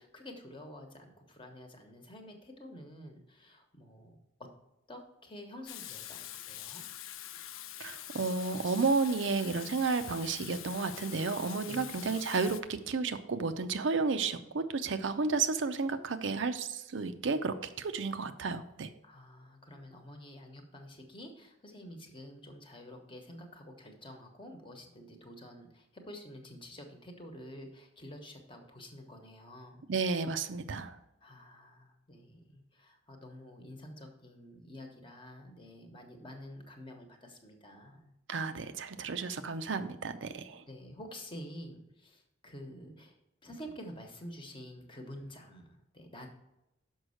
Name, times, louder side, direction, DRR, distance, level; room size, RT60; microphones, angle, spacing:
voice 1, 0.0-4.5 4.9-6.8 11.7-12.1 19.0-29.8 31.2-38.1 40.7-46.3, equal, 25° left, 4 dB, 1.1 m, -49 dB
Water tap faucet / Sink (filling or washing), 5.7-12.6, left 12 dB, 90° left, 0.5 m, -45 dB
voice 2, 7.8-18.9 29.9-31.0 38.3-40.6, right 4 dB, 70° right, 9 dB, 0.5 m, -32 dB
6.3 x 5.4 x 6.3 m, 0.88 s
head